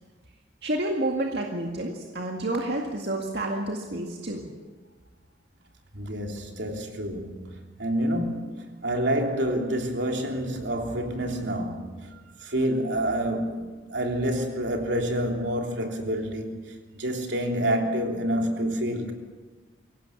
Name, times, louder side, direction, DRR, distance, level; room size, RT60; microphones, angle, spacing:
voice 1, 0.6-4.5, right 1 dB, 65° right, 2.1 m, -29 dB
voice 2, 5.9-16.7 17.0-19.1, right 1 dB, 80° right, 3.2 m, -28 dB
23.5 x 17.5 x 7.1 m
head